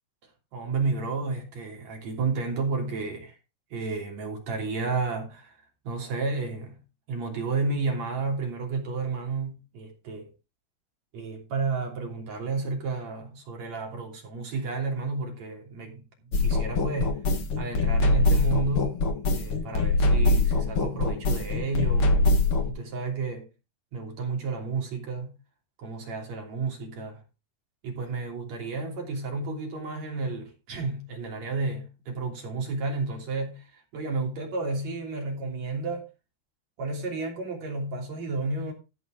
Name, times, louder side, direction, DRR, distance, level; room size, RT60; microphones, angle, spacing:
voice 1, 0.5-3.4 3.7-5.6 5.8-6.8 7.1-10.3 11.1-16.1 16.4-17.2 17.6-19.0 19.3-22.2 22.7-23.5 23.9-25.4 25.8-27.2 27.8-36.1 36.8-38.7, right 3 dB, 40° right, 3.8 m, -31 dB
sound 1, 16.3-22.7, left 2 dB, 80° left, 1.2 m, -23 dB
14.0 x 5.3 x 5.0 m
omnidirectional pair, 5.1 m